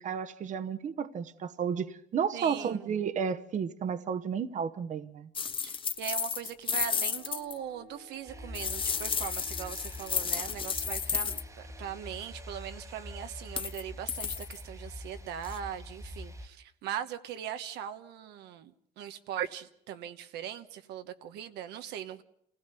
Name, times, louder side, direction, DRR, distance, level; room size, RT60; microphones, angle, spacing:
voice 1, 0.0-5.3, right 7 dB, 45° right, 1.0 m, -32 dB
voice 2, 2.3-2.9 5.6-22.2, right 10 dB, 85° right, 1.1 m, -40 dB
sound 1, 5.4-7.6 8.5-11.4 13.5-13.8 14.1-14.6 15.4-15.6, left 6 dB, 30° left, 0.8 m, -32 dB
sound 2, 6.9-12.3, left 2 dB, 45° left, 2.1 m, -56 dB
sound 3, 8.3-16.5, left 1 dB, 20° right, 1.2 m, -45 dB
27.0 x 16.5 x 6.9 m
cardioid pair, 110°, 17 cm